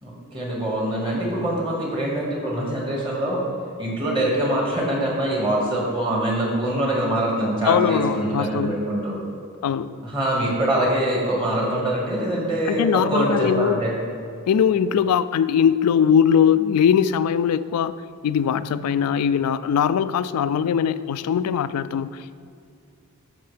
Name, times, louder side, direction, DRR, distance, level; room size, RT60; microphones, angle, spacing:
voice 1, 0.0-3.4 3.8-9.2 10.0-13.9, right 1 dB, 20° right, -3 dB, 1.7 m, -24 dB
voice 2, 7.7-8.7 9.6-10.0 12.7-13.8 14.5-18.0 18.2-22.4, left 8 dB, 90° left, 15 dB, 0.3 m, -21 dB
13.5 x 5.7 x 3.3 m, 2.5 s
head